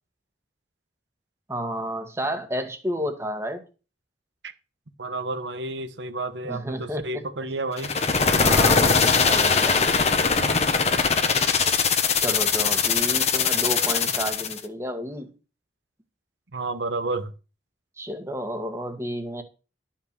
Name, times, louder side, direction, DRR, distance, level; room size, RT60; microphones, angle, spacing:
voice 1, 1.5-3.6 6.4-7.1 8.4-9.9 12.1-15.3 18.0-19.4, equal, 15° right, 1.6 m, -31 dB
voice 2, 5.0-7.9 10.3-10.6 16.5-17.3, right 2 dB, 80° right, 1.2 m, -31 dB
sound 1, 7.8-14.6, left 5 dB, 35° left, 1.2 m, -21 dB
12.5 x 5.8 x 6.7 m
head